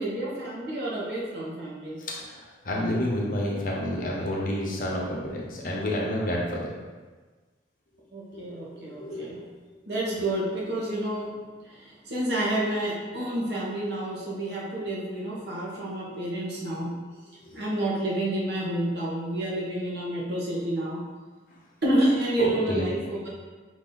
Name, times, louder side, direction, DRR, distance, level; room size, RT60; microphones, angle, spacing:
voice 1, 0.0-2.0 8.1-9.4 9.9-16.9 17.5-21.1 21.8-23.3, right 1 dB, 60° right, -5 dB, 1.1 m, -29 dB
voice 2, 2.0-6.7 8.3-8.5 9.0-9.5 22.4-22.9, left 1 dB, 45° left, -3 dB, 0.8 m, -29 dB
5.1 x 2.7 x 3.9 m, 1.4 s
head